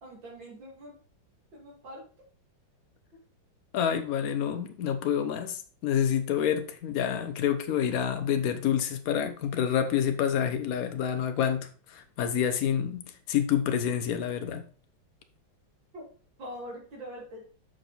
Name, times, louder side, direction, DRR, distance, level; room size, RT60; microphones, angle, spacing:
voice 1, 0.0-1.0 1.5-2.0 15.9-16.1 16.4-17.4, equal, 80° right, 3.1 m, -43 dB
voice 2, 3.7-14.6, left 9 dB, 55° left, 1.2 m, -28 dB
6.6 x 6.4 x 4.0 m
omnidirectional pair, 2.1 m